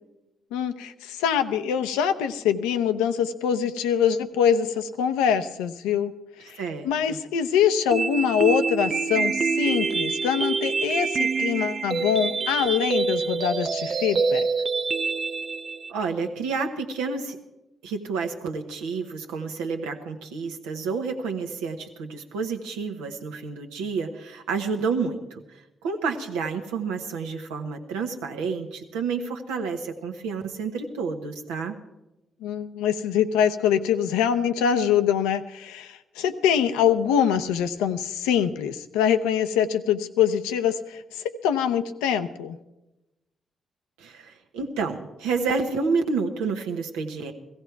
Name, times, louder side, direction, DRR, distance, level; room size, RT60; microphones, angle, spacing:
voice 1, 0.5-6.1 6.4-6.6 6.8-14.5 32.4-42.6, left 8 dB, 90° left, 9 dB, 0.7 m, -24 dB
voice 2, 6.5-7.2 15.9-17.4 17.8-31.8 44.0-47.3, right 4 dB, 90° right, 4 dB, 1.2 m, -29 dB
sound 1, 7.9-15.9, right 4 dB, 55° right, 0.6 m, -26 dB
16.0 x 15.0 x 4.6 m, 0.98 s
hypercardioid pair, 50°, 0 cm